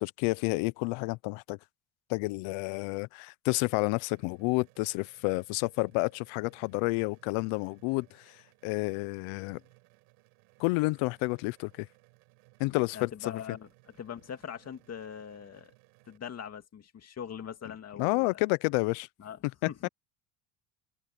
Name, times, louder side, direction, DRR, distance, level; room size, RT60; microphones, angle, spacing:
voice 1, 0.0-1.6 2.1-8.4 8.6-9.6 10.6-11.9 12.6-13.3 18.0-19.1, left 25 dB, 75° left, 0.8 m, -30 dB
sound 1, 4.1-16.2, right 35 dB, 90° right, 8.0 m, -63 dB
voice 2, 12.6-13.7 14.0-15.7 16.1-18.4 19.2-19.4 19.7-19.9, left 8 dB, 30° left, 2.4 m, -42 dB
cardioid pair, 140°, 49 cm